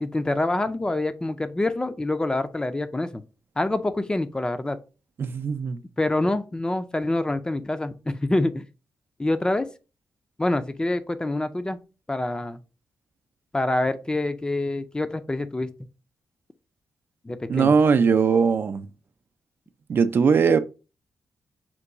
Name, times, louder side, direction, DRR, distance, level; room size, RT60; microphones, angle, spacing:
voice 1, 0.0-3.2 3.6-4.8 6.0-8.6 9.2-9.7 10.4-11.8 12.1-12.6 13.5-15.7 17.2-17.8, left 2 dB, 15° left, 0.4 m, -26 dB
voice 2, 5.2-5.8 17.5-18.9 19.9-20.6, right 5 dB, 55° right, 0.4 m, -20 dB
4.5 x 2.3 x 3.8 m
cardioid pair, 75°, 5 cm